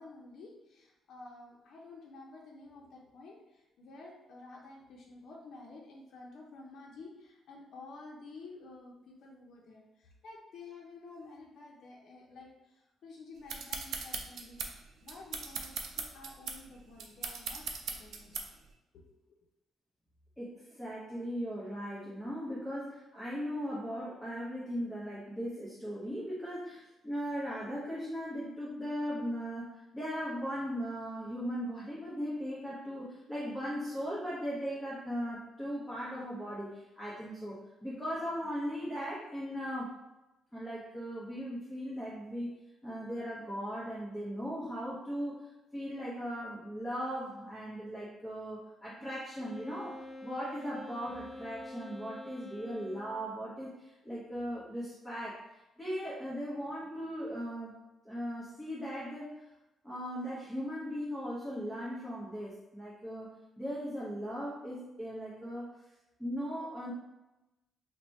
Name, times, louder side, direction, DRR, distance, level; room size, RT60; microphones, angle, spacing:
voice 1, 0.0-14.6 15.0-18.4 18.9-19.1, left 3 dB, 65° left, -2 dB, 0.7 m, -51 dB
sound 1, 13.5-18.7, right 5 dB, 70° right, 0.4 m, -39 dB
voice 2, 20.4-39.9 40.5-42.5 42.8-55.4 55.8-57.7 58.0-59.4 59.8-63.3 63.6-65.7 66.2-66.9, equal, ahead, -8 dB, 1.0 m, -38 dB
Wind instrument woodwind instrument, 49.3-53.4, left 2 dB, 15° left, 0.4 m, -47 dB
2.9 x 2.2 x 4.1 m, 1.0 s
cardioid pair, 90°, 0 cm